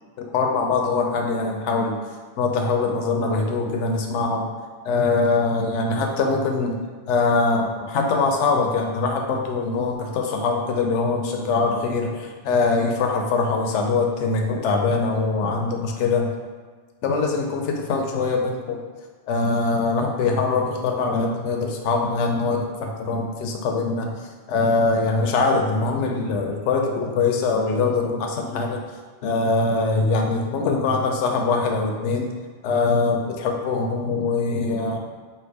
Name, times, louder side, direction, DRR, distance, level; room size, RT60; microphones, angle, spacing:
voice 1, 0.2-2.0 2.4-4.5 4.8-6.8 7.1-16.3 17.0-18.8 19.3-24.1 24.5-28.8 29.2-32.3 32.6-35.0, left 3 dB, 75° left, 2 dB, 0.9 m, -23 dB
3.3 x 2.8 x 4.6 m, 1.5 s
omnidirectional pair, 1.2 m